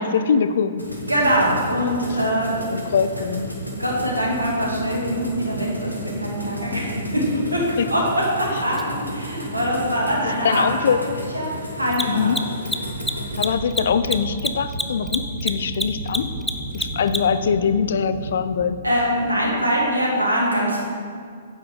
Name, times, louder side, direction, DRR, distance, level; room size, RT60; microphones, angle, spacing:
voice 1, 0.1-0.8 2.7-3.5 7.8-7.9 10.4-11.0 12.0-12.4 13.4-16.3 16.7-18.8, left 6 dB, 55° left, 11 dB, 0.5 m, -22 dB
sound 1, 0.8-13.5, left 1 dB, 90° left, 1.8 m, -33 dB
voice 2, 1.1-2.8 3.7-7.3 7.5-12.4 18.8-20.8, equal, 80° right, -3 dB, 2.6 m, -23 dB
Mechanisms, 8.8-8.9 11.8-17.4, left 1 dB, ahead, 0.5 m, -26 dB
sound 2, 12.8-19.9, right 2 dB, 40° right, 1.2 m, -34 dB
9.9 x 8.6 x 3.8 m, 2.2 s
figure-of-eight pair, 115°, 0 cm